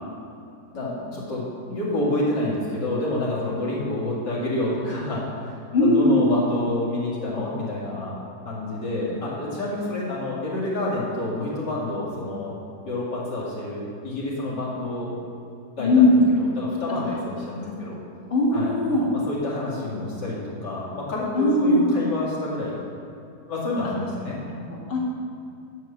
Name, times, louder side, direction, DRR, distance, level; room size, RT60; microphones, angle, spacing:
voice 1, 0.7-5.5 5.8-8.2 8.4-12.6 12.8-15.1 15.8-16.2 16.5-18.0 18.5-18.7 19.3-22.8 23.5-24.4, left 1 dB, 75° left, -6 dB, 2.8 m, -28 dB
voice 2, 5.7-6.2 8.8-9.1 15.8-16.2 16.9-17.0 17.4-17.9 18.3-19.1 21.3-21.9 23.8-23.9 24.4-25.0, left 2 dB, 35° left, -3 dB, 1.6 m, -20 dB
9.7 x 4.7 x 7.0 m, 2.5 s
omnidirectional pair, 1.9 m